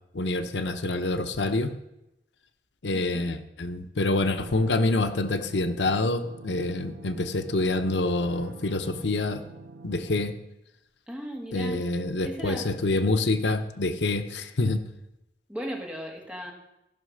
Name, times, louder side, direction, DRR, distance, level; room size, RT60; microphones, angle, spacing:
voice 1, 0.1-1.7 2.8-9.4 9.8-10.3 11.5-14.8, left 2 dB, 80° left, 9 dB, 0.8 m, -26 dB
sound 1, 4.1-10.3, right 3 dB, 90° right, 0.7 m, -46 dB
voice 2, 11.1-11.8 12.2-12.7 15.5-16.5, equal, 5° right, -1 dB, 1.9 m, -36 dB
15.0 x 5.7 x 6.4 m, 0.89 s
head